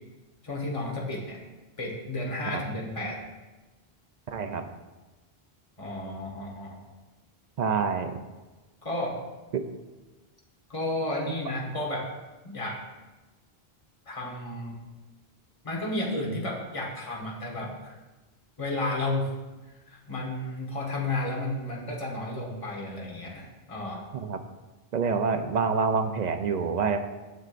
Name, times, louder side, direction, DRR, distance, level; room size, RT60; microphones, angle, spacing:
voice 1, 0.4-1.4 1.8-3.2 5.8-6.8 8.8-9.2 10.7-12.1 12.4-12.8 14.1-14.8 15.6-17.9 18.6-19.3 19.9-24.0, left 1 dB, 35° left, -2 dB, 1.3 m, -32 dB
voice 2, 4.3-4.6 7.6-8.2 9.5-9.6 24.1-24.4 24.9-27.0, right 5 dB, 55° right, 7 dB, 0.5 m, -27 dB
9.3 x 6.7 x 2.5 m, 1.2 s
omnidirectional pair, 1.0 m